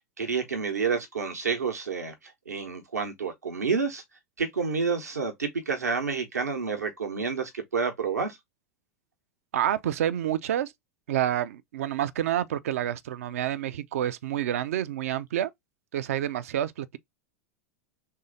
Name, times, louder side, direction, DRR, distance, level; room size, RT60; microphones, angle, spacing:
voice 1, 0.2-2.1 2.5-4.0 4.4-8.4, right 5 dB, 80° right, 1.0 m, -29 dB
voice 2, 9.5-10.7 11.1-15.5 15.9-17.0, right 11 dB, 65° right, 0.4 m, -28 dB
3.3 x 2.7 x 3.9 m
figure-of-eight pair, 90°, 9 cm